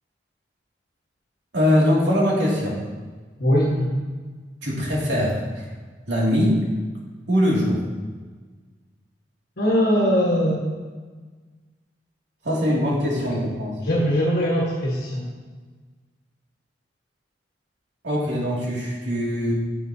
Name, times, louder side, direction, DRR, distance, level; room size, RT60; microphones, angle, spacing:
voice 1, 1.5-2.8 4.6-5.7 6.1-6.6 7.3-7.8 12.4-13.8 18.0-19.5, equal, 80° right, -5 dB, 2.5 m, -22 dB
voice 2, 3.4-3.9 9.6-10.6 13.8-15.3, equal, 60° left, -5 dB, 1.5 m, -21 dB
9.9 x 7.6 x 2.8 m, 1.4 s
head